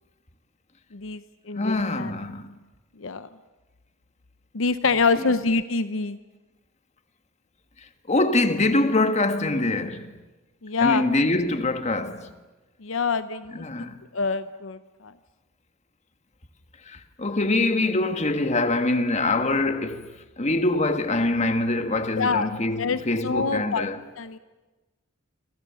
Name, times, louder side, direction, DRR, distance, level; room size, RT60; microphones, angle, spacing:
voice 1, 0.9-1.2 1.5-2.1 3.0-3.3 4.5-6.2 10.6-11.1 12.8-15.1 22.2-22.5 22.8-23.8 24.2-24.4, left 4 dB, 70° left, 0.8 m, -26 dB
voice 2, 1.6-2.6 8.1-10.1 10.8-12.3 13.5-14.0 16.9-24.0, left 2 dB, 35° left, 1.6 m, -24 dB
28.0 x 25.5 x 7.0 m
head